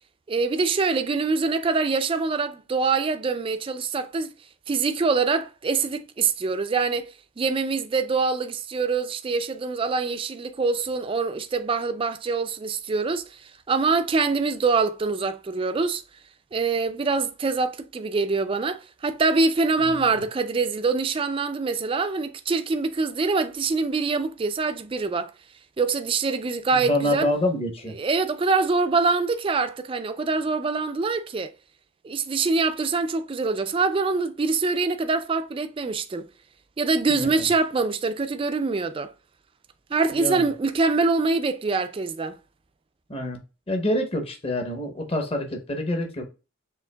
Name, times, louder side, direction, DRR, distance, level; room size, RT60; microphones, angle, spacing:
voice 1, 0.3-4.3 4.7-13.3 13.7-16.0 16.5-25.3 25.8-27.3 28.0-31.5 32.0-36.3 36.8-39.1 39.9-42.4, right 4 dB, 25° right, 0.3 m, -24 dB
voice 2, 19.8-20.2 26.7-28.0 37.1-37.4 40.1-40.5 43.1-43.4 43.7-46.2, left 1 dB, 25° left, 0.9 m, -27 dB
6.9 x 2.9 x 2.2 m
head